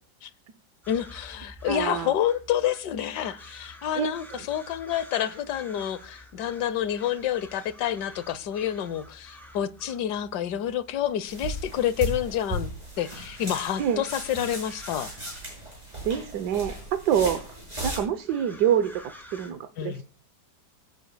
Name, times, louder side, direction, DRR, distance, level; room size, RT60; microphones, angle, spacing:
sound 1, 0.8-19.5, left 1 dB, ahead, 3.1 m, -50 dB
voice 1, 0.9-12.7 13.0-15.1 19.8-20.0, left 10 dB, 85° left, 1.4 m, -28 dB
voice 2, 1.7-2.1 3.9-4.4 13.8-14.0 16.0-17.6 17.8-20.0, right 9 dB, 80° right, 1.4 m, -26 dB
sound 2, 11.3-18.0, right 1 dB, 25° right, 6.7 m, -36 dB
24.0 x 9.1 x 2.2 m
omnidirectional pair, 1.8 m